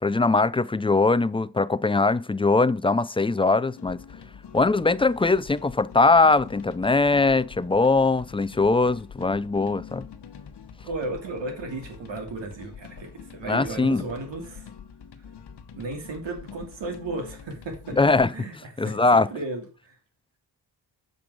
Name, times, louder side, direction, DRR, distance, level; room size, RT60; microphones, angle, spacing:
voice 1, 0.0-4.0 4.5-10.1 13.5-14.0 17.9-18.3 18.8-19.3, left 3 dB, 15° left, 0.3 m, -21 dB
sound 1, 3.8-18.3, left 7 dB, 65° left, 1.0 m, -45 dB
voice 2, 10.8-14.7 15.8-18.0 18.3-19.9, right 2 dB, 85° right, 2.6 m, -34 dB
7.4 x 5.4 x 4.8 m
cardioid pair, 80°, 43 cm